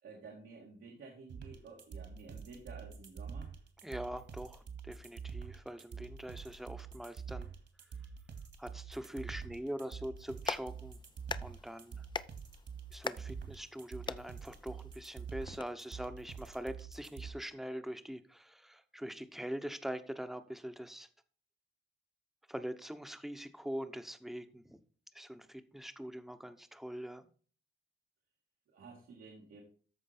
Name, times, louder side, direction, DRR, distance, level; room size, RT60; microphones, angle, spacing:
voice 1, 0.0-3.5 28.7-29.6, right 4 dB, 90° right, -1 dB, 2.3 m, -52 dB
sound 1, 1.3-17.3, right 6 dB, 60° right, 2.1 m, -46 dB
voice 2, 3.8-7.5 8.6-11.0 11.4-12.1 12.9-21.1 22.5-24.8 25.1-27.3, equal, ahead, 10 dB, 0.9 m, -43 dB
Clapping, 10.2-15.6, left 4 dB, 20° left, 0.4 m, -44 dB
13.5 x 4.5 x 4.3 m, 0.41 s
cardioid pair, 110°, 21 cm